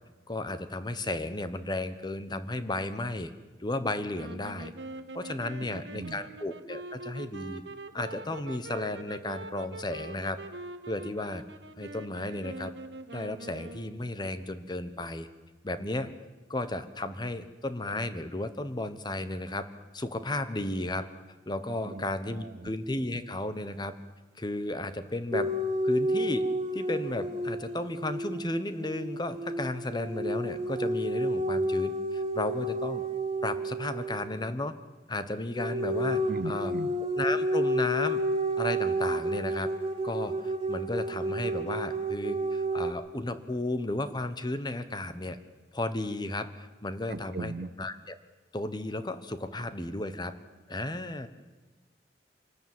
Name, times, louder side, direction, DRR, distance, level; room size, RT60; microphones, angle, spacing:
voice 1, 0.3-3.3 3.6-4.7 5.1-7.6 7.9-10.4 10.9-11.4 11.8-12.7 13.1-15.3 15.6-16.1 16.5-19.7 19.9-21.1 21.5-23.9 24.4-25.5 25.8-26.5 26.7-33.0 33.4-34.7 35.1-36.7 37.0-38.2 38.6-39.7 40.0-45.4 45.7-47.5 47.8-48.1 48.5-50.3 50.7-51.3, left 2 dB, 25° left, 12 dB, 1.1 m, -34 dB
sound 1, 4.1-14.1, right 2 dB, 75° right, 1.2 m, -44 dB
voice 2, 5.7-6.2 21.9-22.1 22.4-22.7 36.3-37.0 47.1-47.7, right 3 dB, 55° right, 19 dB, 0.6 m, -38 dB
sound 2, 25.3-34.4 35.5-42.9, right 1 dB, 30° right, 2.6 m, -31 dB
25.0 x 13.5 x 9.4 m, 1.3 s
head